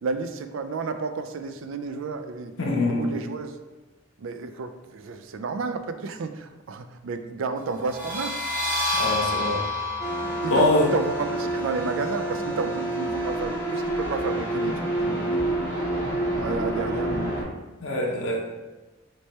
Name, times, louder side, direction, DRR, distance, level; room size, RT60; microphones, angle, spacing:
voice 1, 0.0-2.5 2.8-3.6 4.2-8.4 10.4-15.5 15.9-16.1 16.4-17.4, right 4 dB, 70° right, 9 dB, 0.4 m, -31 dB
voice 2, 2.6-3.1 8.9-9.6 10.5-10.9 17.8-18.5, left 2 dB, 85° left, -1 dB, 0.9 m, -23 dB
sound 1, 7.8-13.2, left 2 dB, 45° right, 1.0 m, -30 dB
sound 2, 10.0-17.4, right 1 dB, 15° left, 1.5 m, -28 dB
3.2 x 3.2 x 4.1 m, 1.1 s
head